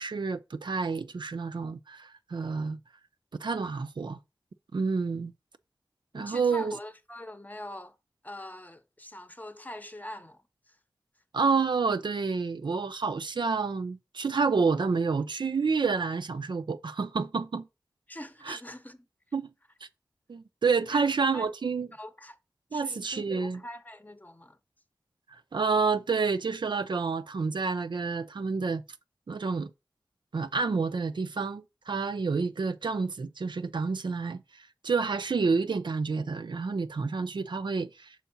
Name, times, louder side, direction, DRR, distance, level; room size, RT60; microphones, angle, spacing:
voice 1, 0.0-2.8 3.4-4.2 4.7-5.3 6.1-6.7 11.3-17.7 18.5-18.6 19.3-19.5 20.3-21.9 22.7-23.6 25.5-28.8 29.3-29.7 30.3-38.1, right 4 dB, 85° right, 0.5 m, -29 dB
voice 2, 6.1-7.9 8.2-10.8 18.1-19.1 20.9-21.5 21.9-22.4 22.7-24.6, left 1 dB, 20° left, 0.7 m, -43 dB
5.8 x 4.6 x 4.0 m
wide cardioid pair, 60°, 8 cm